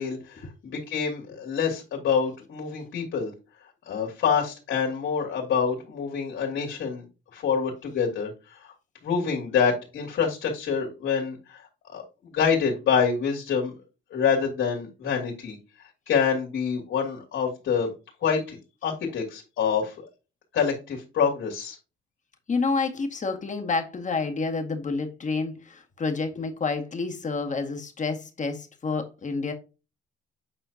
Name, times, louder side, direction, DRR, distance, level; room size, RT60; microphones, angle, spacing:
voice 1, 0.0-3.3 3.9-7.1 7.3-8.7 9.0-13.7 14.1-15.6 16.1-17.9 18.2-18.6 18.8-20.0 20.5-21.8, left 6 dB, 75° left, 0 dB, 3.0 m, -26 dB
voice 2, 22.5-29.5, left 4 dB, 40° left, 4 dB, 2.0 m, -29 dB
8.9 x 4.4 x 2.9 m, 0.29 s
cardioid pair, 90°, 20 cm